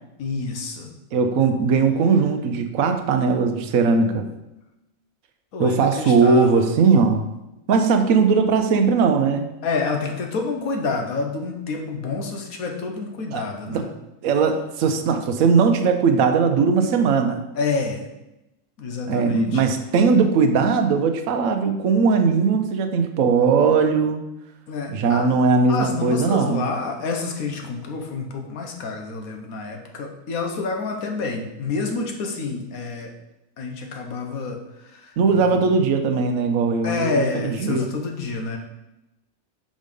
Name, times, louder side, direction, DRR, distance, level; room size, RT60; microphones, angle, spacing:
voice 1, 0.2-0.9 5.5-6.7 9.6-13.9 17.5-18.1 18.8-19.6 24.7-25.3 25.7-33.1 33.6-35.6 36.8-38.6, left 4 dB, 70° left, 2 dB, 1.4 m, -28 dB
voice 2, 1.1-4.3 5.6-7.3 7.7-9.5 13.3-13.8 14.2-17.5 19.1-24.2 24.9-26.6 35.2-37.2 37.6-37.8, right 5 dB, 65° right, 5 dB, 1.1 m, -19 dB
5.4 x 5.1 x 5.2 m, 0.94 s
omnidirectional pair, 1.6 m